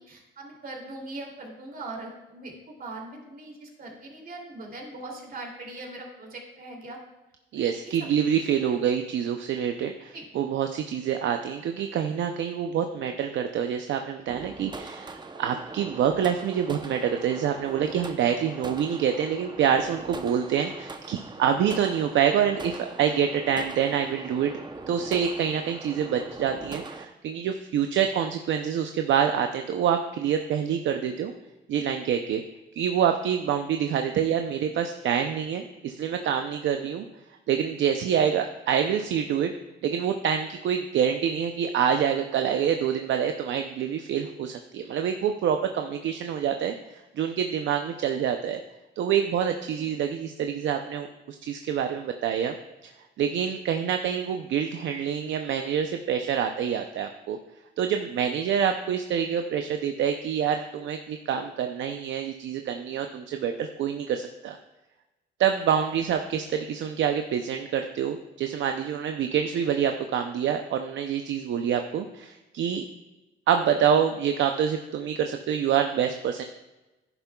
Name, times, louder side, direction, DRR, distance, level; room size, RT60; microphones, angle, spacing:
voice 1, 0.0-7.0 7.5-8.1 8.7-8.8 10.1-10.3 49.7-49.9, right 2 dB, 50° right, -1 dB, 2.7 m, -41 dB
voice 2, 7.5-24.5 24.9-31.3 31.7-32.4 32.8-37.1 37.5-39.5 39.8-48.6 49.0-52.6 52.8-57.4 57.8-64.6 65.4-72.8 73.5-76.4, right 8 dB, 70° right, 6 dB, 0.6 m, -26 dB
sound 1, 14.3-27.1, right 3 dB, 20° right, 0.7 m, -41 dB
10.5 x 10.0 x 2.3 m, 1.1 s
cardioid pair, 90°, 20 cm